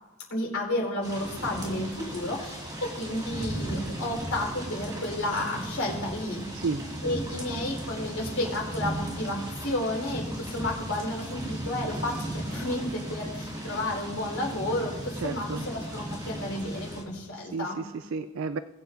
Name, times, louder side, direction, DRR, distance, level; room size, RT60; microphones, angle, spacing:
voice 1, 0.3-6.4 7.0-17.8, left 1 dB, 85° left, -2 dB, 4.0 m, -32 dB
sound 1, 1.0-17.0, right 1 dB, 20° right, 2.1 m, -36 dB
voice 2, 15.2-15.6 17.4-18.6, right 4 dB, 65° right, 12 dB, 0.3 m, -32 dB
20.5 x 8.1 x 2.6 m, 1.1 s
head